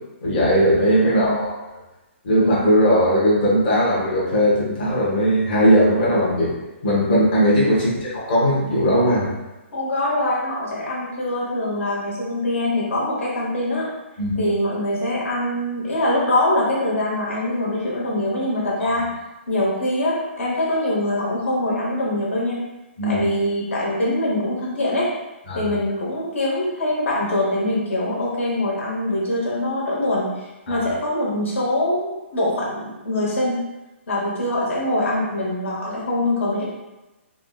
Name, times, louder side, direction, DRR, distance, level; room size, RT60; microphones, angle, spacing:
voice 1, 0.2-1.5 2.2-6.5 6.8-9.3 14.2-14.3 18.8-18.9 23.0-23.2 25.5-25.6 30.7-30.8, equal, 45° left, -7 dB, 1.0 m, -18 dB
voice 2, 1.0-1.4 7.7-7.9 9.7-13.9 14.4-19.1 19.5-22.6 23.1-25.1 25.5-33.6 34.1-36.6, left 1 dB, 80° left, -5 dB, 1.0 m, -23 dB
3.6 x 2.0 x 2.3 m, 1.0 s
hypercardioid pair, 165°, 7 cm